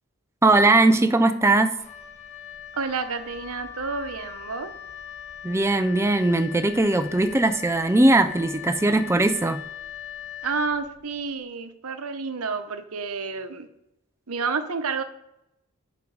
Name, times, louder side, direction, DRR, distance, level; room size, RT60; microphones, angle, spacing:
voice 1, 0.4-1.7 5.4-9.6, right 2 dB, 10° right, 0.4 m, -19 dB
Wind instrument woodwind instrument, 1.8-11.3, left 9 dB, 30° left, 1.1 m, -40 dB
voice 2, 2.7-4.7 10.4-13.7 14.3-15.0, right 4 dB, 75° right, 0.9 m, -30 dB
12.0 x 5.3 x 4.7 m
head